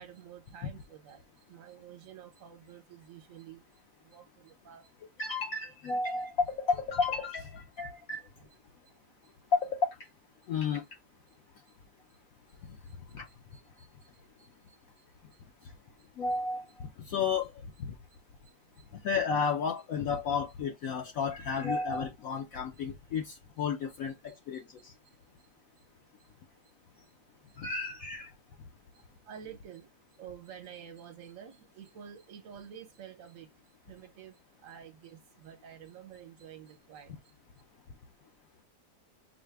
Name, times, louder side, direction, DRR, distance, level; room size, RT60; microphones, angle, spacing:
voice 1, 0.0-4.9 8.8-9.0 9.2-9.4 10.4-10.5 11.3-11.4 11.7-11.8 12.1-16.1 18.1-18.9 24.3-26.7 27.0-27.6 28.9-37.3, right 9 dB, 55° right, 1.2 m, -52 dB
voice 2, 5.2-8.2 9.5-10.0 10.5-10.8 13.1-13.3 16.2-17.5 17.8-17.9 19.0-24.9 27.6-28.3, left 5 dB, 65° left, 1.0 m, -32 dB
4.8 x 2.2 x 3.2 m
omnidirectional pair, 1.8 m